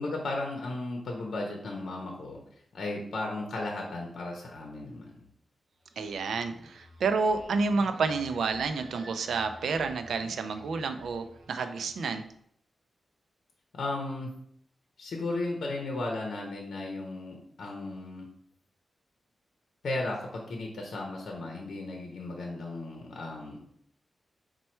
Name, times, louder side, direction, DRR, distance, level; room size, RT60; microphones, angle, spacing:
voice 1, 0.0-2.4 2.7-5.1 13.7-14.3 15.0-18.3 19.8-23.6, left 2 dB, 70° left, 0 dB, 0.7 m, -35 dB
sound 1, 5.7-12.4, right 1 dB, 40° right, 0.6 m, -52 dB
voice 2, 6.0-12.2, right 4 dB, 90° right, 8 dB, 0.4 m, -30 dB
4.2 x 2.2 x 4.3 m, 0.69 s
wide cardioid pair, 135°, 0 cm